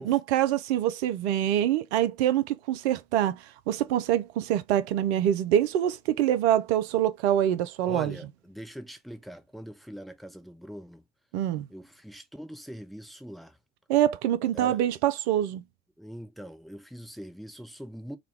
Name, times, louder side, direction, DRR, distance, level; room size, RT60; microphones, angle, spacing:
voice 1, 0.0-8.1 11.3-11.7 13.9-15.6, right 11 dB, 75° right, 0.5 m, -25 dB
voice 2, 7.9-11.0 11.7-13.6 14.5-14.8 16.0-18.2, equal, ahead, 0.6 m, -42 dB
3.6 x 2.2 x 3.4 m
hypercardioid pair, 65°, 34 cm